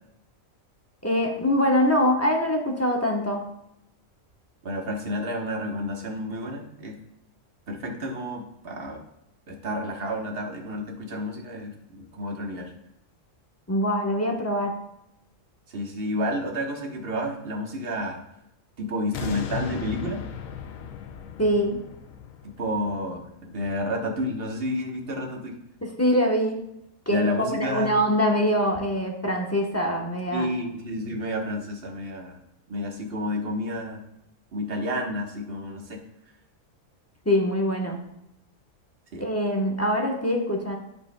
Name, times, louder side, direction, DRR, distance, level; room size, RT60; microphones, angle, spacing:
voice 1, 1.0-3.4 13.7-14.7 21.4-21.8 26.0-26.6 27.1-30.5 37.2-38.0 39.2-40.8, equal, 15° left, 1 dB, 0.9 m, -23 dB
voice 2, 4.6-7.0 7.7-9.0 9.5-12.7 15.7-18.2 18.8-20.2 22.4-25.5 27.1-28.0 30.2-32.4 32.7-34.0 34.5-36.0 39.1-39.3, equal, 50° right, 1 dB, 1.3 m, -30 dB
sound 1, 19.1-24.2 24.7-24.8, left 8 dB, 90° left, 1.1 m, -37 dB
13.5 x 5.1 x 2.2 m, 0.83 s
omnidirectional pair, 1.4 m